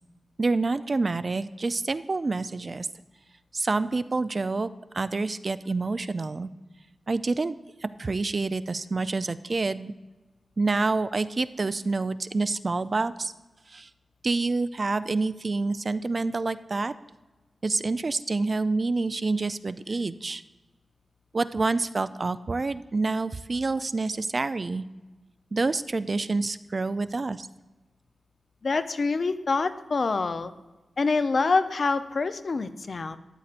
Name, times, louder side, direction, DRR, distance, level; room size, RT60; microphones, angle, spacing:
voice 1, 0.4-2.9 3.5-4.7 4.9-6.5 7.1-7.6 7.8-9.9 10.6-13.3 13.7-13.9 14.2-16.9 17.6-20.4 21.3-24.9 25.5-27.5, right 3 dB, 45° right, 13 dB, 0.3 m, -27 dB
voice 2, 28.6-30.5 31.0-33.2, left 4 dB, 60° left, 10 dB, 0.5 m, -26 dB
13.0 x 8.3 x 2.5 m, 1.1 s
cardioid pair, 70°, 0 cm